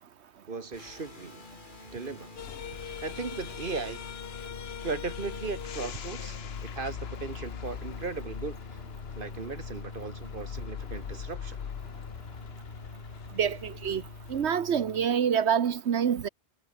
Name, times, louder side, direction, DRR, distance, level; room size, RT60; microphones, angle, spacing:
voice 1, 0.5-1.4 1.9-2.3 2.7-4.0 4.8-8.6 9.1-11.6, right 4 dB, 50° right, 1.7 m, -37 dB
sound 1, 0.7-15.1, left 3 dB, 45° left, 2.6 m, -46 dB
sound 2, 2.4-14.5, left 8 dB, 65° left, 1.1 m, -41 dB
voice 2, 13.4-14.0 14.3-16.3, right 8 dB, 75° right, 1.2 m, -26 dB
omnidirectional pair, 1.1 m